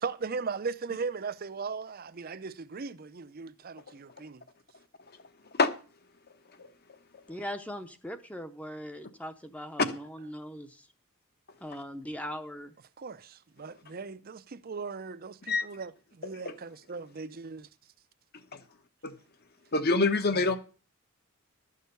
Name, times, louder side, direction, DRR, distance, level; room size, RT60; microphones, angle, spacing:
voice 1, 0.0-4.4 13.0-17.7 20.3-20.6, right 5 dB, 45° right, 0.5 m, -38 dB
voice 2, 7.3-10.9 11.6-12.7, equal, 5° left, 0.7 m, -40 dB
voice 3, 19.7-20.6, left 3 dB, 45° left, 1.1 m, -25 dB
12.5 x 6.6 x 6.7 m
head